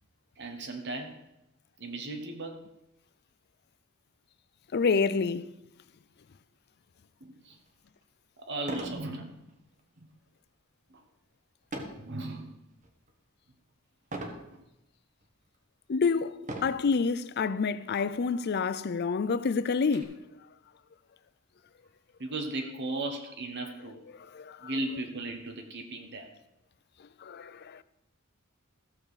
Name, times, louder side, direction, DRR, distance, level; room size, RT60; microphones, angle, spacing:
voice 1, 0.4-1.2 1.8-2.6 7.2-7.6 8.4-9.4 10.0-10.1 10.9-11.0 12.0-12.6 14.5-14.6 22.2-24.0 24.6-26.3, right 2 dB, 55° right, 1.2 m, -36 dB
voice 2, 4.7-5.5 15.9-16.3 16.6-20.1 24.3-24.7 27.2-27.8, left 5 dB, 50° left, 0.4 m, -28 dB
sound 1, 7.7-7.8 8.6-9.0 9.5-9.8 11.7-12.1 12.7-13.1 14.1-14.5 15.2-15.3 16.4-16.9 17.9-18.0 18.4-18.5 18.9-20.0, right 1 dB, 35° right, 1.5 m, -39 dB
14.5 x 7.2 x 5.0 m
head